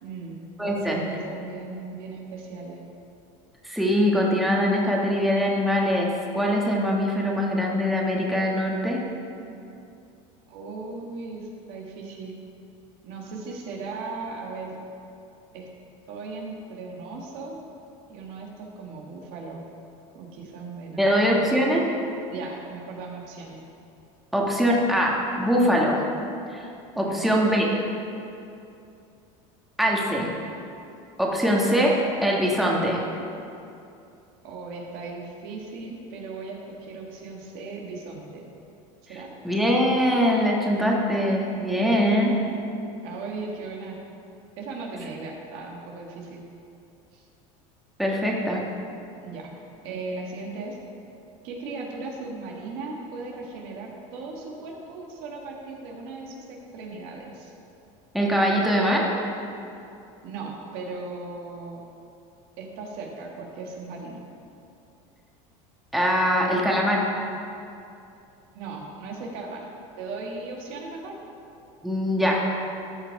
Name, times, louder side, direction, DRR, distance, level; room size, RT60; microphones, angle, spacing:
voice 1, 0.0-2.8 10.5-12.4 13.0-14.8 15.5-15.7 16.1-17.6 18.1-19.6 20.1-21.7 22.3-23.6 26.9-27.3 34.4-38.5 39.1-39.3 43.0-44.0 44.6-46.4 47.1-47.2 49.2-49.5 49.8-50.8 51.4-57.5 60.2-61.8 62.6-64.2 68.5-69.7 70.0-71.2, right 3 dB, 65° right, -1 dB, 1.8 m, -37 dB
voice 2, 0.6-1.0 3.6-9.0 21.0-21.8 24.3-26.0 26.5-26.6 27.0-27.7 29.8-30.3 31.2-31.9 32.2-33.0 39.4-42.3 48.0-48.6 58.1-59.1 65.9-67.1 71.8-72.4, equal, ahead, -3 dB, 1.5 m, -22 dB
13.5 x 5.8 x 4.7 m, 2.7 s
supercardioid pair, 115°, 17 cm